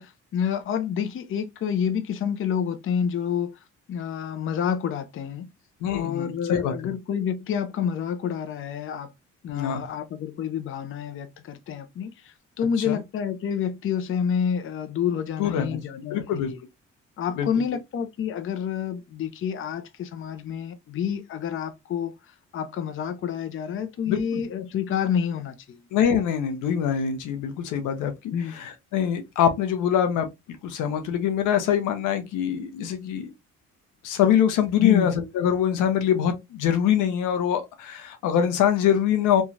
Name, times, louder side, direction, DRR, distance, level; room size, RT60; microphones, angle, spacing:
voice 1, 0.0-3.5 3.9-5.5 5.9-9.1 9.4-16.6 17.2-22.1 22.5-25.8 28.3-28.5 34.8-35.1, left 8 dB, 45° left, 0.5 m, -28 dB
voice 2, 5.8-6.7 9.5-9.8 12.8-13.0 15.4-15.8 16.1-16.5 17.4-17.5 24.1-24.4 25.9-30.3 30.6-33.3 34.0-39.4, left 9 dB, 90° left, 0.7 m, -24 dB
3.0 x 2.3 x 2.5 m
cardioid pair, 90°, 30 cm